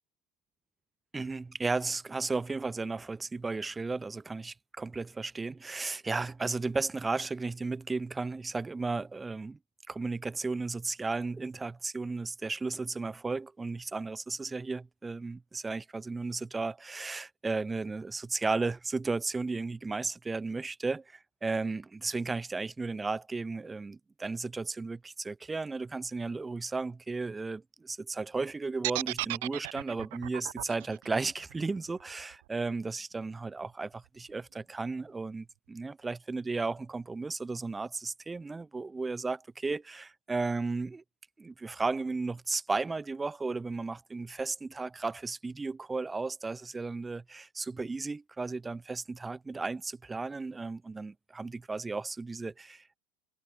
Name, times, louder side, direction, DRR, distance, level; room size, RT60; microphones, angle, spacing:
voice 1, 1.1-9.6 9.9-41.0 41.4-53.0, right 3 dB, 15° right, 0.8 m, -34 dB
sound 1, 28.8-32.9, right 22 dB, 70° right, 0.5 m, -36 dB
hypercardioid pair, 110°, 0 cm